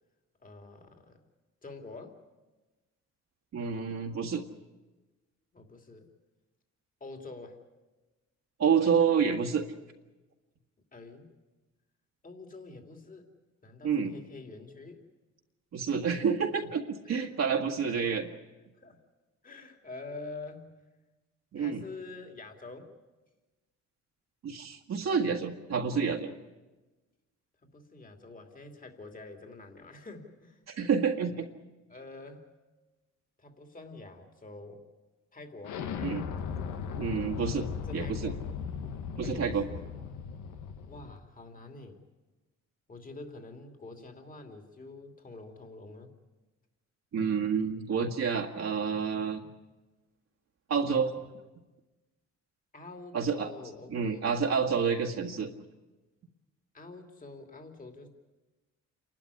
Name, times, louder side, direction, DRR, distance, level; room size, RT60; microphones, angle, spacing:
voice 1, 0.4-1.2 1.6-2.2 5.5-6.1 7.0-7.6 10.9-11.4 12.2-13.3 13.6-15.1 17.0-17.3 17.8-18.0 18.8-19.0 19.4-20.8 21.6-22.9 27.6-30.6 31.9-32.5 33.4-34.8 35.3-35.8 37.8-38.4 39.2-39.8 40.9-42.1 42.9-46.1 52.7-54.4 56.7-58.1, left 3 dB, 25° left, 4 dB, 2.8 m, -46 dB
voice 2, 3.5-4.4 8.6-9.7 13.8-14.1 15.7-18.3 21.5-21.8 24.4-26.3 30.7-31.5 36.0-36.3 37.0-37.7 37.9-38.3 39.2-39.6 47.1-49.4 50.7-51.1 53.1-53.5 53.9-55.5, right 6 dB, 60° right, 0 dB, 1.8 m, -28 dB
Explosion, 35.6-41.2, left 7 dB, 90° left, 1.4 m, -37 dB
27.5 x 12.0 x 9.9 m, 1.2 s
cardioid pair, 90°, 30 cm